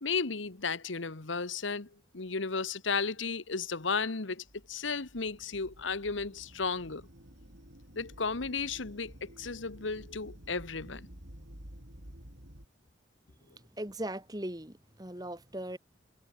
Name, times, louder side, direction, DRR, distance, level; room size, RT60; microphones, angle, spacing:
voice 1, 0.0-7.1 7.9-11.1, left 4 dB, 80° left, 1.4 m, -34 dB
sound 1, 4.5-12.7, equal, 70° right, 5.8 m, -52 dB
voice 2, 13.5-15.8, right 1 dB, 20° right, 2.2 m, -39 dB
head